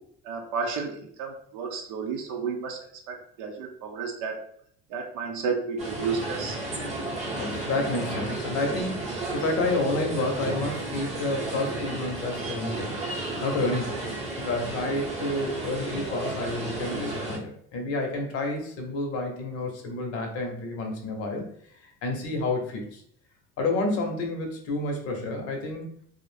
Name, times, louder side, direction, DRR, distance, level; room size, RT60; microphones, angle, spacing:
voice 1, 0.2-2.8 3.1-4.4 4.9-6.6, right 5 dB, 80° right, 2 dB, 0.6 m, -32 dB
sound 1, 5.8-17.4, right 2 dB, 25° right, 0.7 m, -33 dB
voice 2, 7.3-12.9 13.4-21.5 21.7-23.0 23.6-25.9, left 2 dB, 50° left, 3 dB, 0.7 m, -30 dB
2.4 x 2.0 x 3.1 m, 0.64 s
cardioid pair, 150°, 29 cm